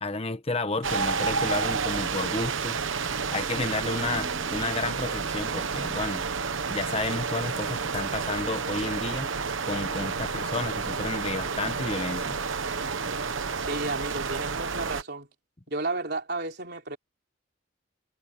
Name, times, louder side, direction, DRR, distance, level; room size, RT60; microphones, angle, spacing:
voice 1, 0.0-2.8 3.3-6.3 6.7-9.3 9.6-12.4, left 2 dB, 30° left, 1.2 m, -31 dB
sound 1, 0.8-15.0, right 5 dB, 70° right, 1.1 m, -30 dB
sound 2, 3.9-9.5, equal, 5° right, 3.0 m, -49 dB
voice 2, 13.6-15.3 15.7-17.0, right 2 dB, 50° right, 3.9 m, -32 dB
head